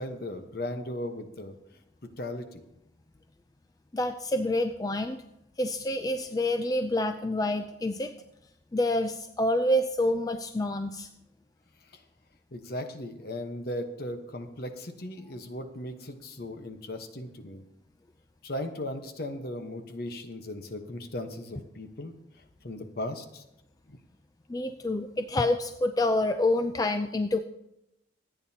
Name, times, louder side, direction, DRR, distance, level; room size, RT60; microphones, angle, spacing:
voice 1, 0.0-1.5 2.0-2.6 11.8-12.0 12.5-17.6 18.4-22.1 22.6-23.4 23.9-24.0, left 1 dB, 55° left, 6 dB, 1.1 m, -37 dB
voice 2, 3.9-5.2 5.6-8.1 8.7-11.1 24.5-27.4, left 1 dB, 20° left, 8 dB, 0.4 m, -27 dB
25.5 x 9.1 x 2.9 m, 0.86 s
head